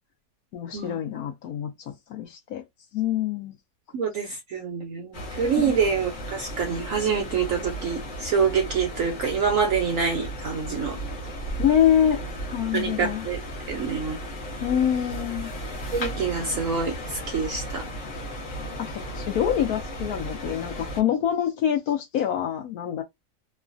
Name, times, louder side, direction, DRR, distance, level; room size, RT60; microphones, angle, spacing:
voice 1, 0.5-1.7 2.1-2.6 2.9-3.5 5.6-5.7 11.6-12.2 12.5-13.2 14.6-15.5 19.1-23.0, left 9 dB, 70° left, 0.9 m, -25 dB
voice 2, 3.9-11.0 12.7-13.4 13.7-14.2 15.9-17.8, right 6 dB, 70° right, 0.8 m, -26 dB
sound 1, 5.1-21.0, equal, 35° left, 0.8 m, -35 dB
3.1 x 2.2 x 2.5 m
omnidirectional pair, 1.9 m